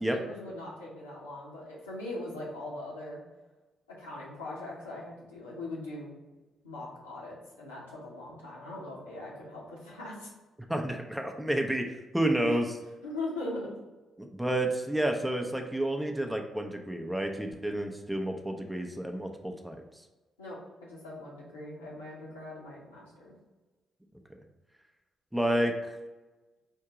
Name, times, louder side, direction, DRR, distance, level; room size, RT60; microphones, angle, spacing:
voice 1, 0.1-3.2 4.0-6.1 6.6-10.3 12.4-12.6 13.0-13.7 20.4-23.3, left 1 dB, 80° left, -6 dB, 1.0 m, -40 dB
voice 2, 10.7-11.9 12.1-12.7 14.2-19.8 25.3-25.7, right 1 dB, 5° right, 3 dB, 0.6 m, -30 dB
4.6 x 2.7 x 3.5 m, 1.2 s
figure-of-eight pair, 40°, 0 cm